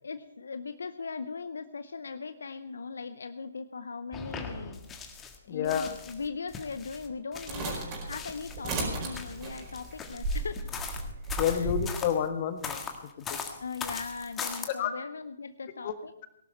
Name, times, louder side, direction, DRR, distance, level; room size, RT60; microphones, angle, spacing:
voice 1, 0.0-4.8 5.5-10.7 11.5-11.7 13.6-16.1, left 4 dB, 75° left, 11 dB, 0.6 m, -39 dB
sound 1, 4.1-5.4 5.6-8.7 9.1-12.1 12.6-14.7, left 6 dB, 15° left, 1.6 m, -40 dB
voice 2, 5.5-5.9 11.4-12.8 13.3-13.4 14.7-15.0 15.8-15.9, left 9 dB, 40° left, 9 dB, 1.4 m, -29 dB
sound 2, 7.5-11.8, right 2 dB, 25° right, 4.8 m, -34 dB
18.5 x 12.0 x 4.5 m, 0.82 s
figure-of-eight pair, 135°, 0 cm